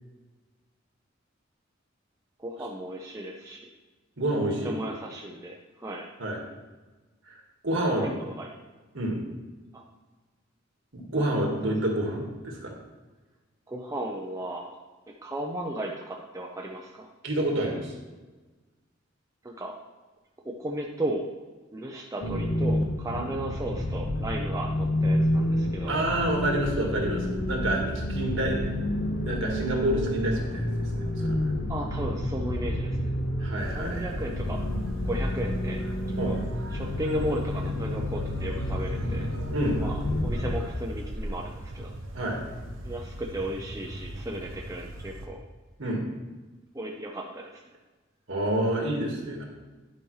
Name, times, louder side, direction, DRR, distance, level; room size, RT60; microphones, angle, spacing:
voice 1, 2.4-3.6 4.6-6.1 8.0-8.5 9.7-9.8 11.2-11.3 11.6-11.7 13.7-14.7 15.2-17.1 19.4-19.7 20.4-21.3 21.7-26.0 31.7-33.1 33.7-34.6 35.1-35.8 36.3-36.4 36.7-39.3 39.8-41.9 42.8-45.4 46.7-47.6, right 1 dB, 15° right, -1 dB, 0.6 m, -35 dB
voice 2, 4.2-4.8 6.2-6.4 7.3-7.4 7.6-8.1 8.9-9.2 10.9-12.7 17.2-17.9 23.1-23.2 25.9-28.6 29.2-31.3 33.4-34.2 36.2-36.3 39.5-39.8 42.1-42.4 45.8-46.0 48.3-49.5, right 1 dB, 70° right, 0 dB, 1.7 m, -28 dB
sound 1, 22.2-40.6, left 1 dB, 55° left, 0.9 m, -29 dB
sound 2, 33.6-45.3, right 1 dB, 90° right, 0.9 m, -39 dB
11.0 x 5.1 x 3.2 m, 1.2 s
head